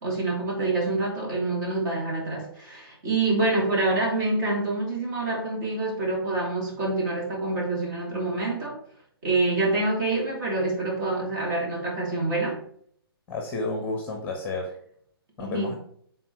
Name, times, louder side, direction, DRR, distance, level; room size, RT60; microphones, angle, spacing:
voice 1, 0.0-8.8 9.2-12.6 15.4-15.7, right 2 dB, 40° right, -3 dB, 3.0 m, -26 dB
voice 2, 13.3-14.7 15.4-15.7, left 3 dB, 15° left, 2 dB, 1.0 m, -31 dB
6.9 x 4.0 x 4.7 m, 0.64 s
hypercardioid pair, 150°, 13 cm